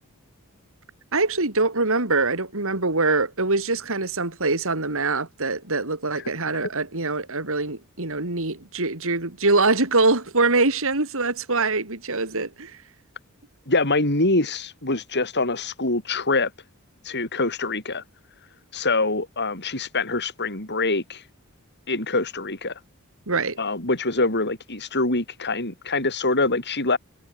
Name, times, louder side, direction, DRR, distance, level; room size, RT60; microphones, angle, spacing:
voice 1, 1.1-12.8 23.3-23.6, right 3 dB, 65° right, 3.7 m, -23 dB
voice 2, 13.7-16.5 17.0-18.0 18.7-21.2 21.9-22.7 23.6-27.0, left 3 dB, 50° left, 7.2 m, -24 dB
head